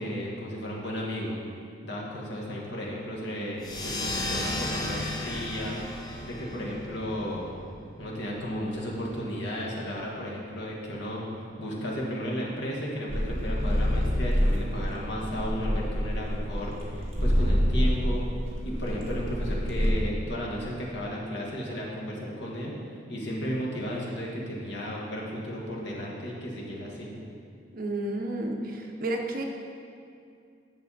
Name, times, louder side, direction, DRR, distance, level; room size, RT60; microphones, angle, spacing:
voice 1, 0.0-1.4 1.8-5.8 6.2-7.5 8.0-18.2 18.6-22.8 23.1-27.2, equal, 65° left, -3 dB, 1.6 m, -34 dB
sound 1, 3.6-8.7, left 1 dB, 20° left, 0.8 m, -35 dB
sound 2, 13.1-19.9, equal, 35° right, 1.6 m, -27 dB
voice 2, 27.7-29.4, right 1 dB, 50° right, 2 dB, 0.8 m, -31 dB
9.7 x 6.6 x 4.1 m, 2.4 s
head